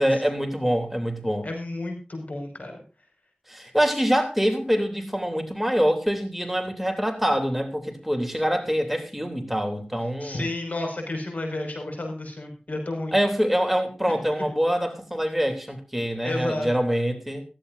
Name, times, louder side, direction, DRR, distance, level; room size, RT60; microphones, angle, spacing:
voice 1, 0.0-1.5 3.5-10.5 13.1-17.4, equal, 5° right, 3.2 m, -25 dB
voice 2, 1.4-2.8 10.2-13.1 14.1-14.5 16.2-16.7, left 2 dB, 65° left, 5.9 m, -32 dB
16.5 x 15.0 x 2.7 m
wide cardioid pair, 45°, 3 cm